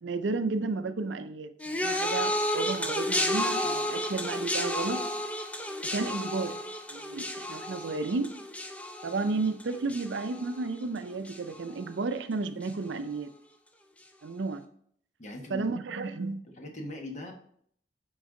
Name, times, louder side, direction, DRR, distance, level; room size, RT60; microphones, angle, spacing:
voice 1, 0.0-5.0 5.8-6.6 6.9-8.3 9.0-13.3 14.2-14.6 15.5-16.4, right 3 dB, 85° right, 0.5 m, -32 dB
sound 1, 1.6-11.0 11.2-11.8 12.6-12.7, left 1 dB, 5° left, 0.5 m, -32 dB
voice 2, 15.2-15.7 16.5-17.3, left 1 dB, 40° left, 1.1 m, -39 dB
9.4 x 3.9 x 3.7 m
head